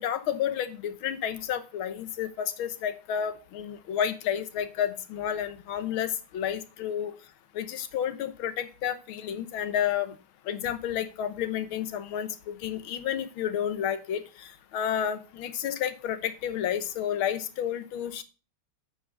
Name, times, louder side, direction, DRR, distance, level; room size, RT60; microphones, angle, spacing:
voice 1, 0.0-7.1 7.5-10.2 10.5-18.2, left 9 dB, 80° left, 12 dB, 1.8 m, -31 dB
9.1 x 5.0 x 6.6 m, 0.33 s
omnidirectional pair, 2.2 m